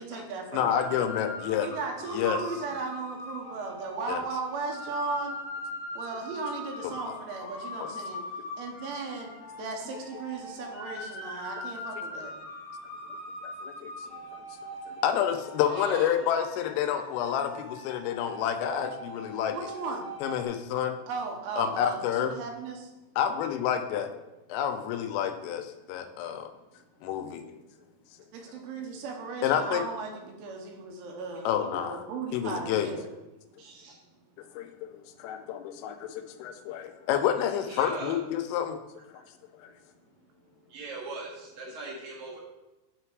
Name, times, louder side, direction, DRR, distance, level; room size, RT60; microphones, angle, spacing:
voice 1, 0.0-0.8 1.6-5.4 6.0-8.2 8.6-9.3 9.6-12.3 19.5-20.1 21.1-22.9 28.3-33.1, right 4 dB, 80° right, 1 dB, 3.1 m, -36 dB
voice 2, 0.5-1.7 2.1-2.4 4.1-4.3 7.0-7.2 7.8-7.9 13.4-14.2 14.9-19.6 20.2-21.0 21.6-22.3 23.2-24.1 24.5-26.5 27.0-27.6 29.4-29.8 31.5-32.0 32.3-32.9 34.5-38.8 39.1-39.2 39.6-39.7, left 9 dB, 85° left, 8 dB, 3.2 m, -29 dB
sound 1, 0.7-20.4, left 1 dB, 65° left, 1.5 m, -41 dB
voice 3, 15.6-16.2 33.6-33.9 37.7-38.2 40.7-42.4, right 3 dB, 60° right, -5 dB, 2.1 m, -39 dB
9.7 x 3.3 x 4.6 m, 1.0 s
omnidirectional pair, 5.9 m